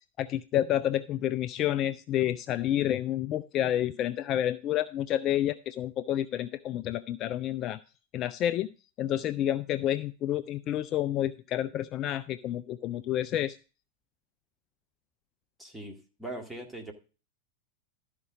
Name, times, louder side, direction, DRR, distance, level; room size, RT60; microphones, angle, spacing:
voice 1, 0.2-7.8 8.1-8.7 9.0-13.6, left 12 dB, 35° left, 14 dB, 0.4 m, -29 dB
voice 2, 15.6-16.9, right 1 dB, 5° right, 3 dB, 2.0 m, -41 dB
12.5 x 5.2 x 4.9 m, 0.34 s
figure-of-eight pair, 90°, 0 cm